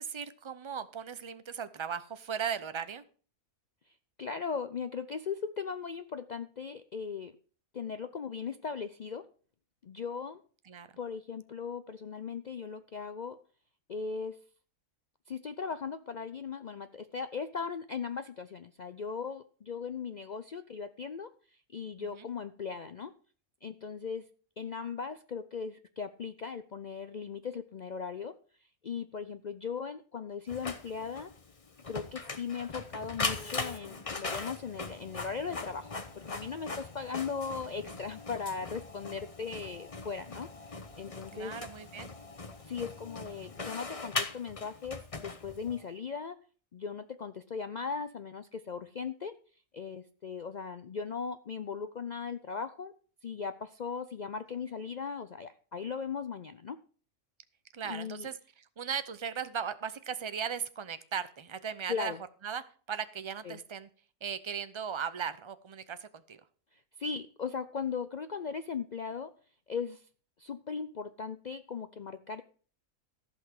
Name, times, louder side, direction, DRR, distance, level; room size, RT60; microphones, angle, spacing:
voice 1, 0.0-3.0 10.7-10.9 22.0-22.3 41.3-42.1 57.7-62.1 62.4-63.9 64.2-66.4, right 7 dB, 35° right, 13 dB, 0.4 m, -37 dB
voice 2, 4.2-7.3 7.7-9.3 9.8-10.4 11.0-13.4 13.9-14.4 15.3-21.3 21.7-23.1 23.6-24.2 24.6-28.3 28.8-31.3 31.9-40.5 41.0-41.6 42.7-46.4 46.7-49.4 49.7-52.9 53.2-56.8 57.8-58.3 61.9-62.2 63.4-63.6 67.0-69.3 69.7-70.0 70.4-72.4, left 6 dB, 75° left, 11 dB, 0.4 m, -38 dB
Printer, 30.5-45.9, left 3 dB, 25° left, 0.9 m, -40 dB
14.5 x 5.8 x 6.4 m, 0.42 s
omnidirectional pair, 1.5 m